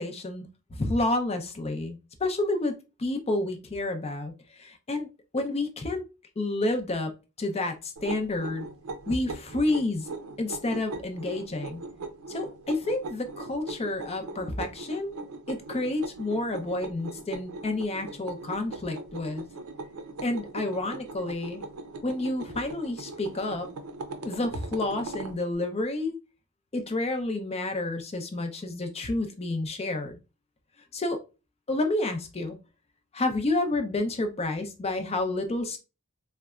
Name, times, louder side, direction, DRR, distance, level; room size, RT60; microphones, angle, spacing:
voice 1, 0.0-2.7 3.0-5.1 5.3-6.0 6.4-8.7 9.1-10.1 10.4-11.8 12.3-15.2 15.5-19.4 20.2-21.6 22.0-23.7 24.2-26.1 26.7-30.2 30.9-31.2 31.7-32.6 33.1-35.8, left 2 dB, 30° left, 0.5 m, -30 dB
sound 1, 8.0-25.4, right 3 dB, 80° right, 0.5 m, -40 dB
3.9 x 2.1 x 2.3 m
head